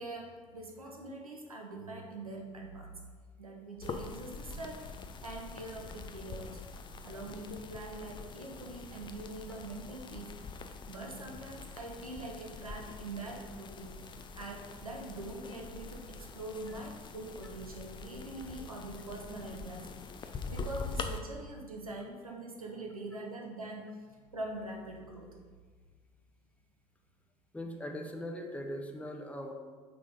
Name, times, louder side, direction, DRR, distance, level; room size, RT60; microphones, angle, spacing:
voice 1, 0.0-2.9 3.4-4.8 5.2-6.6 7.0-14.0 14.4-19.9 20.2-25.4, right 2 dB, 85° right, 0 dB, 0.8 m, -43 dB
sound 1, 3.8-21.2, left 4 dB, 25° left, 0.5 m, -44 dB
voice 2, 27.5-29.5, equal, 5° left, 3 dB, 0.8 m, -40 dB
5.6 x 3.8 x 5.2 m, 1.5 s
figure-of-eight pair, 65°, 18 cm